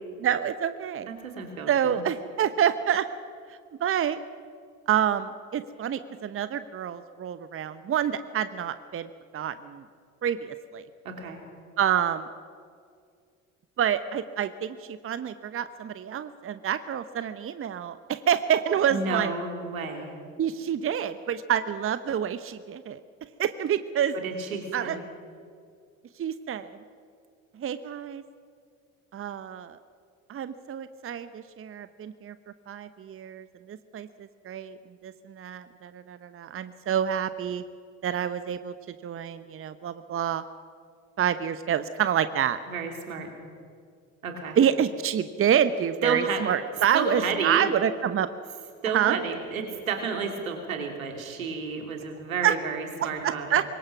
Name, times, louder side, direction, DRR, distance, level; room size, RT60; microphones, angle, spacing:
voice 1, 0.2-1.1 1.7-3.1 3.8-4.2 4.9-9.8 10.2-10.8 11.8-12.3 13.8-19.3 20.4-23.0 23.4-24.2 24.7-25.0 26.2-26.8 27.6-28.2 29.1-29.8 30.3-32.3 32.7-34.8 35.0-37.6 38.0-38.7 39.0-40.4 41.2-42.6 44.6-48.3 48.9-49.2 52.4-52.5 53.0-53.6, right 9 dB, 30° right, 13 dB, 1.0 m, -27 dB
voice 2, 1.1-2.0 11.0-11.4 18.9-20.1 24.1-25.0 42.7-43.3 44.2-44.6 46.0-46.5 46.9-47.7 48.8-53.6, right 5 dB, 80° right, 4 dB, 3.0 m, -31 dB
25.5 x 22.5 x 6.0 m, 2.2 s
figure-of-eight pair, 55°, 41 cm